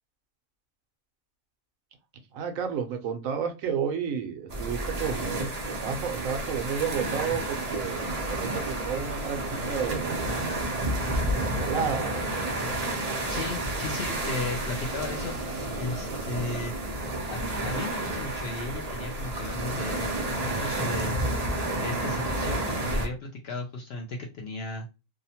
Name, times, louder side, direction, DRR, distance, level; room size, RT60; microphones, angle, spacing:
voice 1, 2.3-10.3 11.3-12.2, right 7 dB, 75° right, 6 dB, 1.0 m, -32 dB
sound 1, 4.5-23.1, right 1 dB, 55° right, 0.4 m, -30 dB
voice 2, 13.3-16.7 17.3-21.2 21.8-24.9, left 2 dB, 65° left, 1 dB, 0.6 m, -35 dB
2.7 x 2.1 x 2.7 m, 0.28 s
omnidirectional pair, 1.5 m